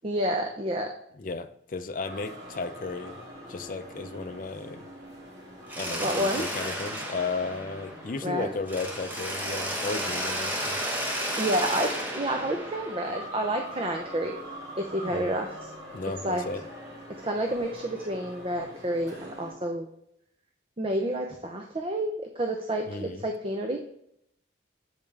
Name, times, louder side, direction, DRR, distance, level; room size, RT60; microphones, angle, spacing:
voice 1, 0.0-0.9 6.0-6.4 8.2-8.5 11.4-14.3 14.8-15.6 16.2-16.4 17.2-19.9 20.8-23.8, right 1 dB, 30° right, 3 dB, 0.6 m, -29 dB
voice 2, 1.2-3.2 3.5-4.9 5.8-10.8 15.0-15.3 15.9-16.6 22.9-23.3, left 3 dB, 45° left, 9 dB, 0.5 m, -34 dB
sound 1, 2.0-19.5, equal, 70° right, 2.3 m, -44 dB
Mechanisms, 5.7-8.3 8.7-13.5, equal, 10° right, 1.0 m, -33 dB
8.1 x 5.3 x 3.4 m, 0.74 s
head